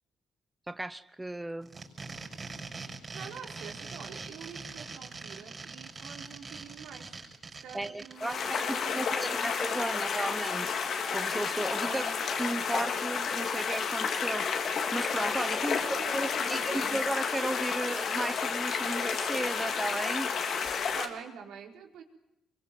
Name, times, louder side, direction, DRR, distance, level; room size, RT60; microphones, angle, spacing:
voice 1, 0.7-1.7 7.7-10.7 11.1-12.0 12.4-14.5 14.9-20.3, right 1 dB, 10° right, 13 dB, 0.9 m, -34 dB
sound 1, 1.6-8.3, right 4 dB, 30° right, 6.7 m, -43 dB
voice 2, 3.1-7.2 7.6-9.4 11.8-12.1 15.6-16.9 20.9-22.0, right 7 dB, 80° right, 2 dB, 4.6 m, -46 dB
sound 2, 8.2-21.1, left 6 dB, 65° left, 3.3 m, -31 dB
25.5 x 23.5 x 7.8 m, 0.91 s
cardioid pair, 90°, 0 cm